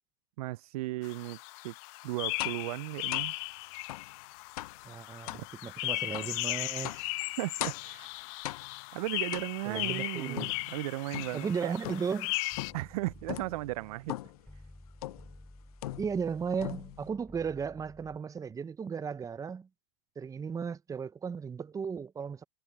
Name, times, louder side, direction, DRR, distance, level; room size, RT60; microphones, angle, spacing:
voice 1, 0.4-1.4 1.6-1.7 2.0-3.3 5.3-5.4 7.4-8.1 8.9-11.8 12.7-14.2, right 19 dB, 75° right, 0.5 m, -36 dB
sound 1, 1.0-12.7, left 24 dB, 60° left, 0.9 m, -37 dB
sound 2, 2.4-2.7 3.1-3.4 3.9-4.1 4.6-4.8 5.3-5.5 6.1-6.4 6.8-7.1 7.6-8.0 8.4-8.9 9.3-9.8 10.4-11.4 11.8-12.2 12.6-12.9 13.3-13.6 14.1-14.4 15.0-15.3 15.8-16.3 16.6-17.1, left 16 dB, 80° left, 0.7 m, -40 dB
voice 2, 4.8-7.0 9.7-10.5 11.3-12.4 16.0-19.7 20.2-22.4, right 6 dB, 20° right, 0.7 m, -35 dB
sound 3, 12.5-18.2, left 1 dB, 5° left, 5.1 m, -54 dB
hypercardioid pair, 110°, 19 cm